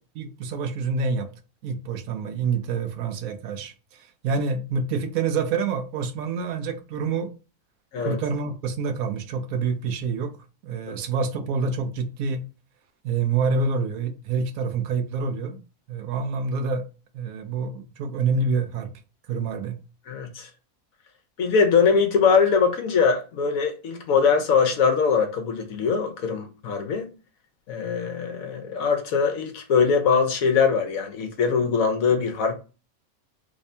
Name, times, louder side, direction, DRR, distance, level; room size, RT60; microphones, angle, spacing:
voice 1, 0.2-1.3 1.6-7.3 8.0-10.3 10.6-12.4 13.0-15.6 15.9-16.8 17.1-18.9 19.3-19.8, right 4 dB, 80° right, 1.1 m, -27 dB
voice 2, 20.1-20.5 21.4-27.1 27.7-32.5, left 5 dB, 75° left, 1.3 m, -22 dB
3.4 x 2.7 x 3.3 m
omnidirectional pair, 1.5 m